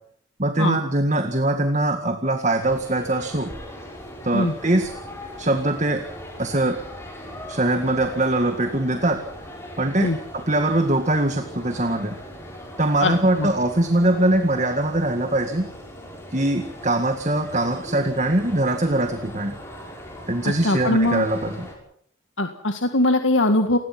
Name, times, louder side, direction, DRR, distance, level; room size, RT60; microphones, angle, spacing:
voice 1, 0.4-3.5 4.2-4.9 5.4-6.1 6.4-6.8 7.5-9.2 9.8-12.2 12.8-15.7 16.3-19.5 20.3-21.7, right 1 dB, 35° right, 7 dB, 1.9 m, -22 dB
sound 1, 2.6-21.7, equal, 15° left, 6.8 m, -39 dB
voice 2, 13.0-13.5 20.6-21.3 22.4-23.8, left 1 dB, 75° left, 6 dB, 1.8 m, -21 dB
29.0 x 20.5 x 6.0 m, 0.67 s
head